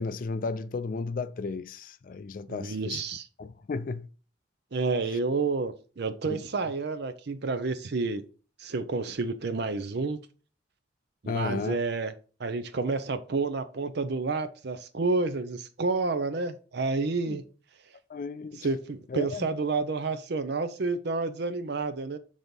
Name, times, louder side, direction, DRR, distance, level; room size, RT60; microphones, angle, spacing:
voice 1, 0.0-3.0 3.4-4.1 6.3-6.4 11.3-11.8 17.3-17.4 18.1-18.7 19.1-19.5, left 4 dB, 45° left, 0.4 m, -33 dB
voice 2, 2.5-3.3 4.7-8.2 8.6-10.2 11.2-12.1 12.4-17.4 18.6-22.2, right 3 dB, 60° right, 0.5 m, -30 dB
6.2 x 4.0 x 5.2 m
head